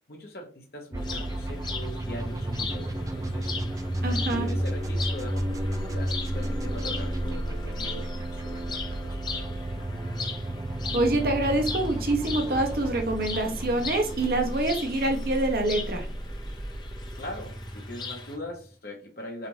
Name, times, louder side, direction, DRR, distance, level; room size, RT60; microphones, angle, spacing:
voice 1, 0.1-3.5 4.2-9.9 17.2-19.5, left 1 dB, 60° left, 1 dB, 1.2 m, -41 dB
sound 1, 0.9-18.7, right 1 dB, 20° right, 0.4 m, -32 dB
sound 2, 1.0-18.4, left 5 dB, 25° left, 0.9 m, -40 dB
voice 2, 4.0-4.5 10.9-16.1, right 2 dB, 55° right, 3 dB, 0.8 m, -26 dB
6.5 x 2.6 x 3.1 m, 0.37 s
head